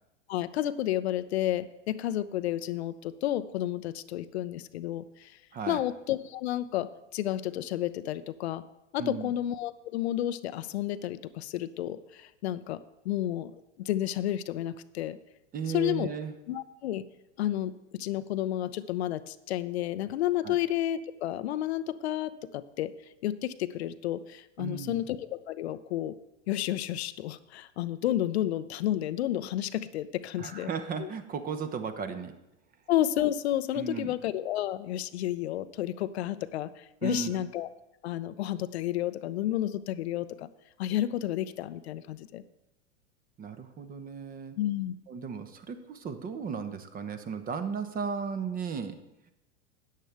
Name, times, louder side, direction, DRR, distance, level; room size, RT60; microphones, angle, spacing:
voice 1, 0.3-5.4 5.7-8.6 8.9-12.8 13.0-15.2 15.7-16.1 16.5-17.0 17.4-22.9 23.2-26.2 26.5-30.7 31.0-31.1 32.9-37.7 38.0-40.5 40.8-42.4 44.6-44.9, left 13 dB, 65° left, 13 dB, 0.6 m, -31 dB
voice 2, 9.0-9.3 15.5-16.3 20.4-20.6 24.6-25.1 30.4-32.3 33.7-34.1 37.0-37.4 43.4-44.6 45.1-49.0, right 5 dB, 25° right, 10 dB, 0.9 m, -35 dB
13.0 x 9.2 x 3.4 m, 0.91 s
figure-of-eight pair, 90°, 36 cm